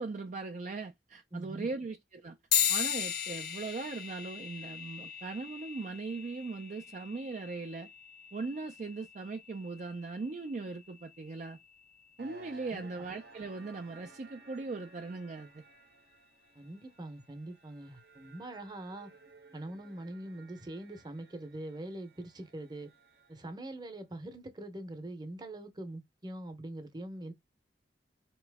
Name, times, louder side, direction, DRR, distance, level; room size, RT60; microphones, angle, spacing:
voice 1, 0.0-2.4 2.7-7.9 8.3-11.6 12.2-15.6, right 3 dB, 45° right, 0.4 m, -39 dB
voice 2, 1.3-1.7 12.7-12.9 16.5-19.1 19.5-22.9 23.3-27.3, right 1 dB, 25° right, 0.8 m, -43 dB
sound 1, 2.5-12.3, left 9 dB, 60° left, 0.7 m, -37 dB
sound 2, 12.2-23.6, right 3 dB, 60° right, 0.7 m, -57 dB
4.0 x 3.0 x 3.4 m
head